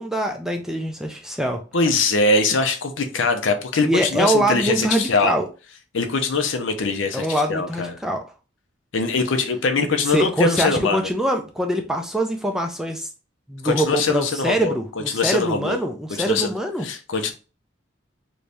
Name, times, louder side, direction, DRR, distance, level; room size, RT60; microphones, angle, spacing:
voice 1, 0.0-1.6 3.8-5.4 7.1-8.2 10.1-13.1 13.5-16.9, right 1 dB, 5° right, 0.4 m, -23 dB
voice 2, 1.7-5.4 5.9-8.0 8.9-11.1 13.6-14.8 15.1-15.8 16.2-16.5 16.8-17.3, left 3 dB, 75° left, 0.6 m, -22 dB
3.1 x 2.7 x 3.4 m
head